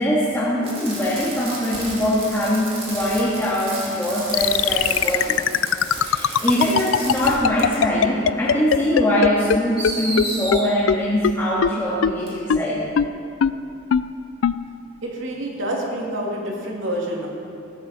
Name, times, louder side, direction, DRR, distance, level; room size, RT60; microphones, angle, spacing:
voice 1, 0.0-5.4 6.0-12.8, equal, 15° left, -8 dB, 1.7 m, -22 dB
Fireworks, 0.6-7.3 7.6-7.8 8.8-8.9 9.8-10.6 12.3-12.4, right 2 dB, 30° right, 2.9 m, -33 dB
sound 1, 4.3-9.6 9.8-9.9 10.2-10.3 10.5-10.6 10.9-11.0 11.2-11.3 11.6-11.7 12.0-12.1 12.5-12.6 13.0-13.1 13.4-13.5 13.9-14.0 14.4-14.5, left 8 dB, 80° left, 0.4 m, -17 dB
voice 2, 15.0-17.3, right 1 dB, 75° right, -2 dB, 2.4 m, -27 dB
15.0 x 13.5 x 4.2 m, 2.6 s
head